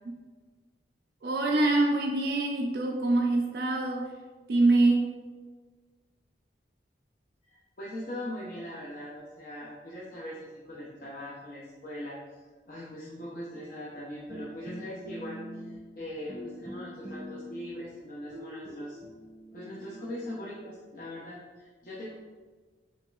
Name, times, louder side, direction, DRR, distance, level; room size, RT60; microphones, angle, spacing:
voice 1, 1.2-4.1 4.5-5.1, right 2 dB, 55° right, 1 dB, 0.4 m, -25 dB
voice 2, 7.4-19.0 19.5-22.1, left 1 dB, 50° left, -7 dB, 0.6 m, -41 dB
sound 1, 14.3-16.0 16.3-17.9 18.3-20.9, left 1 dB, 25° left, 1.2 m, -43 dB
5.5 x 3.0 x 2.3 m, 1.4 s
head